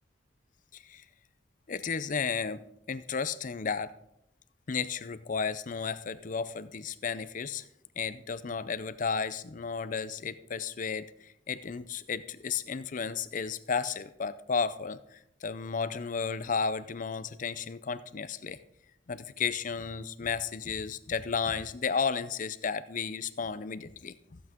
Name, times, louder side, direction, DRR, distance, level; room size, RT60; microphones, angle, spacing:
voice 1, 0.7-1.0 1.7-3.9 4.7-7.6 8.0-18.6 19.1-24.4, left 5 dB, 45° left, 14 dB, 0.5 m, -33 dB
15.0 x 8.2 x 3.7 m, 0.77 s
head